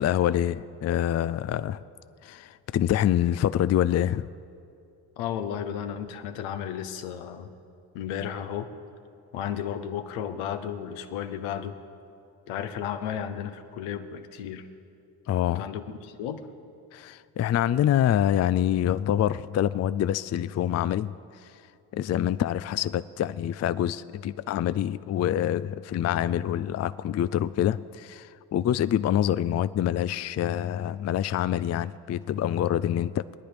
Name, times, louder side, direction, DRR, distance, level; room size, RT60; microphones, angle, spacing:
voice 1, 0.0-1.8 2.2-4.3 15.3-15.7 16.9-21.6 21.9-33.2, left 11 dB, 35° left, 15 dB, 0.4 m, -26 dB
voice 2, 5.2-7.5 7.9-8.7 9.3-11.7 12.5-14.7 15.4-16.5, left 9 dB, 75° left, 8 dB, 1.1 m, -33 dB
20.5 x 10.5 x 5.1 m, 2.5 s
hypercardioid pair, 45°, 49 cm